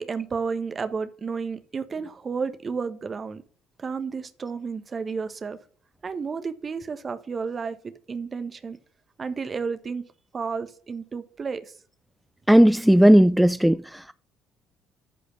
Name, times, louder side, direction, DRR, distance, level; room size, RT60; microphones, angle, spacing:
voice 1, 0.0-3.4 3.8-5.6 6.0-7.8 8.1-8.8 9.2-10.1 10.3-11.6, right 5 dB, 35° right, 1.3 m, -31 dB
voice 2, 12.5-14.1, equal, 5° right, 0.3 m, -16 dB
13.5 x 5.0 x 5.3 m
figure-of-eight pair, 50°, 0 cm